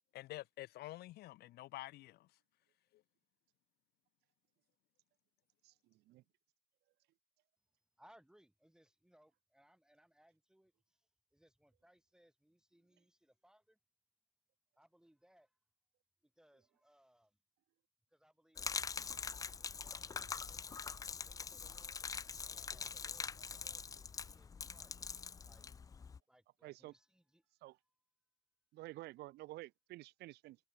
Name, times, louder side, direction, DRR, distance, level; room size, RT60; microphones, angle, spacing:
voice 1, 0.1-2.3 2.9-3.0, left 16 dB, 70° left, 0.6 m, -49 dB
voice 2, 5.6-6.2 26.6-26.9 27.6-27.8 28.7-30.6, right 18 dB, 75° right, 0.6 m, -51 dB
voice 3, 8.0-13.8 14.8-15.6 16.2-17.4 18.1-18.9 19.2-22.0 22.4-25.7 26.3-27.5, equal, 5° right, 2.1 m, -69 dB
Gurgling / Liquid, 18.6-26.2, left 5 dB, 20° left, 0.3 m, -44 dB
cardioid pair, 110°, 17 cm